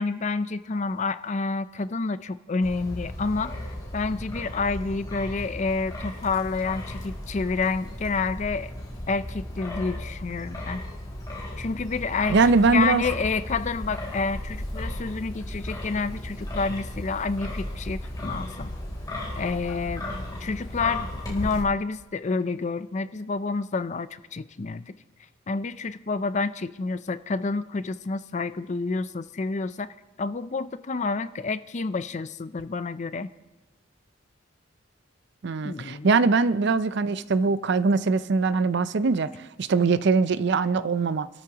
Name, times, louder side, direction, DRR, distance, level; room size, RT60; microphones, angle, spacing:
voice 1, 0.0-3.6 3.9-8.7 9.1-10.8 11.6-18.7 19.4-20.1 20.4-24.9 25.5-29.9 30.2-33.3 35.6-36.1, left 4 dB, 35° left, 0.5 m, -29 dB
Wind, 2.6-21.6, left 1 dB, 20° left, 3.4 m, -35 dB
voice 2, 12.3-13.0 35.4-41.3, right 4 dB, 55° right, 0.5 m, -22 dB
28.5 x 13.0 x 2.9 m
head